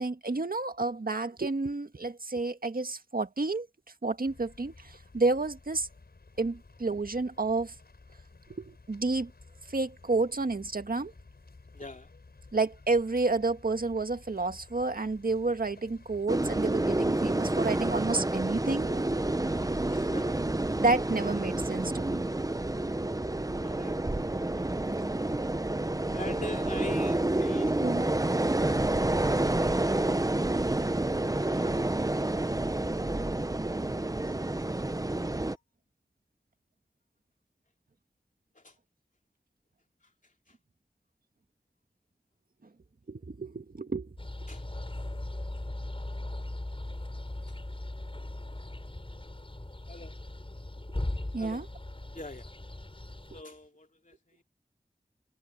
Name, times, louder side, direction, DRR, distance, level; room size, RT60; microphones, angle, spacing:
voice 1, 0.0-3.7 4.0-5.9 6.4-7.7 8.5-9.3 9.7-11.1 12.5-19.2 20.8-22.3 27.8-28.1 31.6-31.7 43.1-44.2 51.3-51.7, right 3 dB, 65° right, 1.9 m, -30 dB
sound 1, 4.2-16.3, left 3 dB, 85° left, 6.2 m, -54 dB
voice 2, 11.7-12.1 19.8-20.4 23.6-23.9 26.1-27.8 28.8-29.3 31.3-32.8 33.7-33.8 34.2-34.8 38.5-38.8 40.2-40.5 44.5-44.7 47.5-47.6 49.9-50.1 51.4-51.6 52.1-52.5 53.3-54.4, left 2 dB, 55° left, 2.8 m, -44 dB
sound 2, 16.3-35.6, right 2 dB, 20° right, 0.8 m, -29 dB
sound 3, 44.2-53.4, left 1 dB, 35° left, 7.7 m, -38 dB
wide cardioid pair, 40°, 16 cm